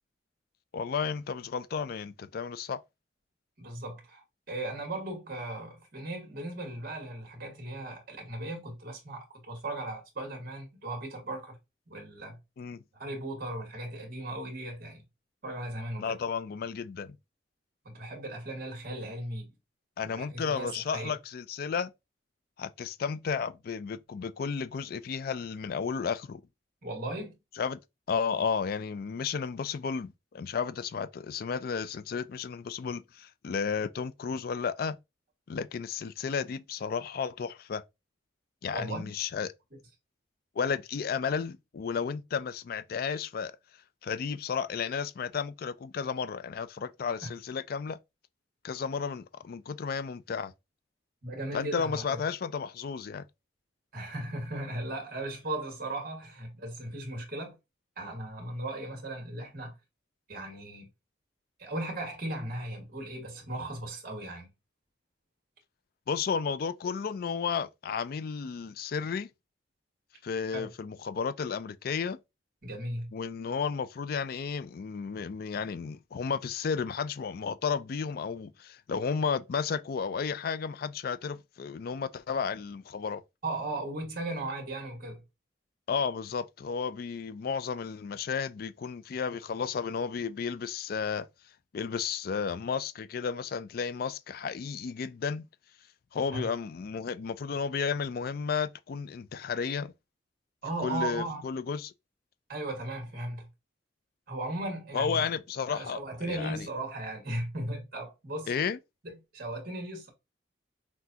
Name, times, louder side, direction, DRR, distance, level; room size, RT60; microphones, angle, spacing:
voice 1, 0.7-2.8 12.6-12.8 16.0-17.2 20.0-21.9 22.6-26.4 27.6-27.8 28.1-35.0 35.5-37.8 38.6-39.5 40.6-43.5 44.0-48.0 48.6-50.5 51.5-53.2 66.1-69.3 70.2-72.2 73.1-83.2 85.9-91.3 91.7-95.4 96.1-99.9 100.8-101.9 104.9-106.0 106.3-106.7 108.5-108.8, left 6 dB, 55° left, 0.3 m, -33 dB
voice 2, 3.6-11.6 11.9-12.4 12.9-15.0 15.4-16.1 17.8-19.5 20.0-21.1 26.8-27.4 38.7-39.1 47.2-47.3 51.2-52.2 53.9-57.5 58.0-59.7 60.3-60.9 61.6-64.5 70.5-70.7 72.6-73.1 83.4-85.2 96.3-96.5 100.6-101.4 102.5-103.5 104.3-105.2 105.7-108.5 109.0-110.1, right 1 dB, 50° right, 1.7 m, -37 dB
5.9 x 2.3 x 2.7 m
head